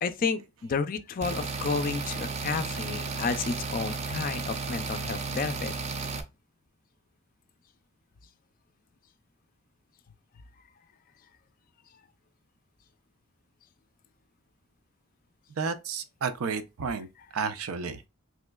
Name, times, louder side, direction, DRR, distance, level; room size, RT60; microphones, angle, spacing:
voice 1, 0.0-5.7, left 5 dB, 40° left, 0.4 m, -31 dB
sound 1, 1.2-6.2, right 4 dB, 30° right, 0.5 m, -34 dB
voice 2, 15.6-17.1 17.3-18.1, right 5 dB, 90° right, 0.5 m, -31 dB
3.6 x 3.0 x 2.2 m
head